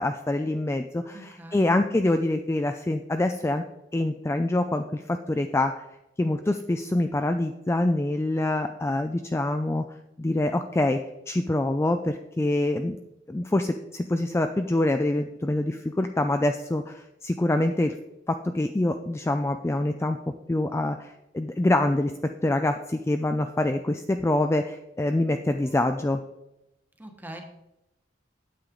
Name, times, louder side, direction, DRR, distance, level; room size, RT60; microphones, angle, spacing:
voice 1, 0.0-3.6 3.9-5.8 6.2-9.8 10.2-11.0 11.3-13.0 13.3-18.0 18.3-20.2 20.5-22.1 22.4-26.2, left 1 dB, 15° left, 7 dB, 0.3 m, -25 dB
voice 2, 1.1-1.7 27.0-27.4, right 1 dB, 10° right, 3 dB, 1.2 m, -42 dB
8.9 x 8.3 x 3.8 m, 0.90 s
head